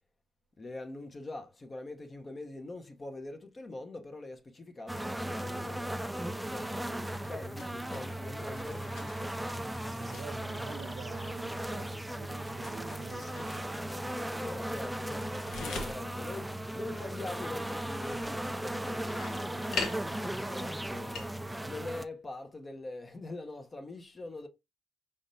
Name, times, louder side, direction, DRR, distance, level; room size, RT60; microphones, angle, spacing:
voice 1, 0.6-9.4 14.4-24.5, left 2 dB, 30° left, 0.8 m, -44 dB
sound 1, 4.9-22.1, right 1 dB, 5° right, 0.3 m, -37 dB
sound 2, 6.5-21.3, left 4 dB, 70° left, 1.1 m, -45 dB
voice 2, 9.9-14.3, right 7 dB, 70° right, 0.5 m, -48 dB
5.1 x 3.6 x 2.7 m
cardioid pair, 90°, 0 cm